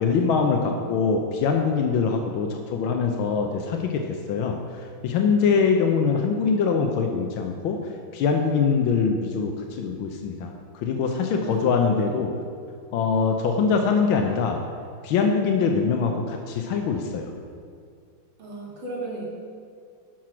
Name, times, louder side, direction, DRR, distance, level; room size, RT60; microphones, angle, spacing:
voice 1, 0.0-4.6 5.0-7.8 8.1-12.3 12.9-14.6 15.0-17.3, left 5 dB, 85° left, 3 dB, 1.5 m, -23 dB
voice 2, 11.3-11.7 12.0-12.2 18.4-19.3, right 2 dB, 85° right, -4 dB, 2.7 m, -36 dB
9.2 x 5.9 x 6.1 m, 2.2 s
omnidirectional pair, 2.2 m